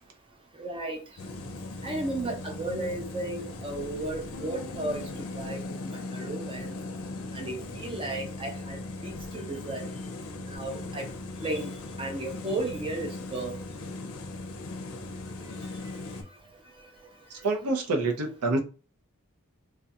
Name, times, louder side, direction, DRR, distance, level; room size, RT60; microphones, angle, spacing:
voice 1, 0.6-1.0 1.8-5.1 5.4-6.7 7.3-9.9 10.5-11.1 11.4-11.7 12.0-13.6, right 2 dB, 25° right, 0.5 m, -34 dB
sound 1, 1.2-16.2, left 2 dB, 65° left, 0.5 m, -39 dB
Bass guitar, 4.3-10.6, left 3 dB, 65° right, 1.1 m, -52 dB
voice 2, 17.4-18.6, right 2 dB, 85° right, 0.6 m, -26 dB
2.4 x 2.2 x 2.7 m
head